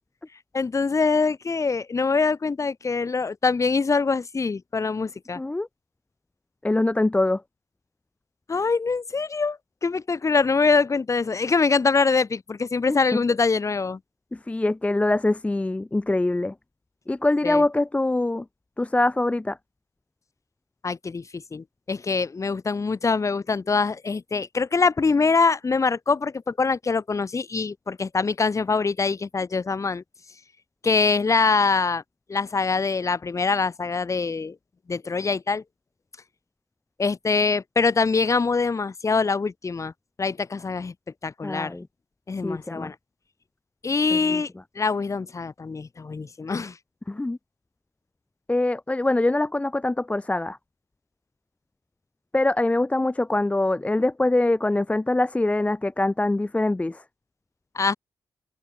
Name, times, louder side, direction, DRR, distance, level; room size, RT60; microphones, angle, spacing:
voice 1, 0.5-5.4 8.5-14.0 17.4-17.6 20.8-30.0 30.8-32.0 32.3-34.5 34.9-35.6 37.0-39.9 40.2-40.9 41.2-41.7 42.3-42.9 43.8-44.5 44.7-46.7 57.7-57.9, left 4 dB, 40° left, 1.6 m, -24 dB
voice 2, 5.4-5.7 6.6-7.4 12.9-13.2 14.3-16.5 17.1-18.4 18.8-19.6 41.4-41.9 42.4-42.9 44.1-44.4 47.1-47.4 48.5-50.6 52.3-57.0, left 2 dB, 15° left, 0.5 m, -24 dB
open air
cardioid pair, 75°, 8 cm